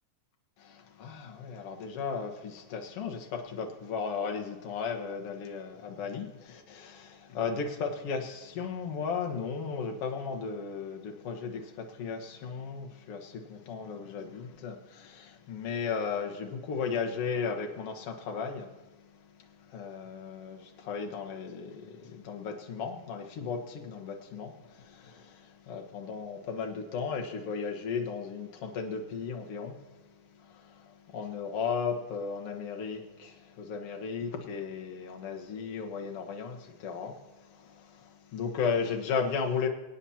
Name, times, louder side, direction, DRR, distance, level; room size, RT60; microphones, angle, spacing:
voice 1, 0.6-39.7, left 5 dB, 55° left, 2.0 m, -35 dB
24.5 x 9.2 x 2.9 m
omnidirectional pair, 3.6 m